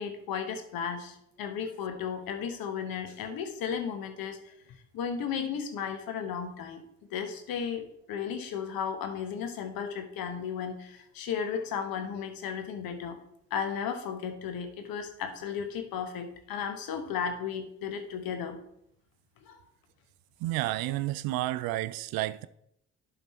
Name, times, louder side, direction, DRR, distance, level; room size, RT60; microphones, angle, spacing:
voice 1, 0.0-4.5 4.9-6.8 7.1-13.2 13.5-18.6 19.4-19.6, left 7 dB, 70° left, 1.3 m, -34 dB
voice 2, 20.4-22.5, right 16 dB, 70° right, 0.5 m, -31 dB
11.5 x 4.0 x 4.3 m
hypercardioid pair, 50°, 37 cm